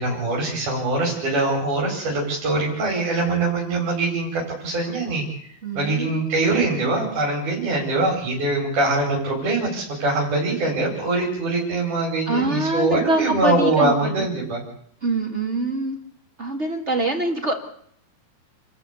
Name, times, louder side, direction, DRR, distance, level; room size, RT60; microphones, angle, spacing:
voice 1, 0.0-5.2 5.7-14.6, right 2 dB, 50° right, -3 dB, 6.4 m, -23 dB
voice 2, 5.6-6.4 12.3-14.3 15.0-16.0 16.4-17.5, right 2 dB, 25° right, 3 dB, 1.6 m, -24 dB
28.5 x 14.0 x 8.4 m, 0.66 s
omnidirectional pair, 4.8 m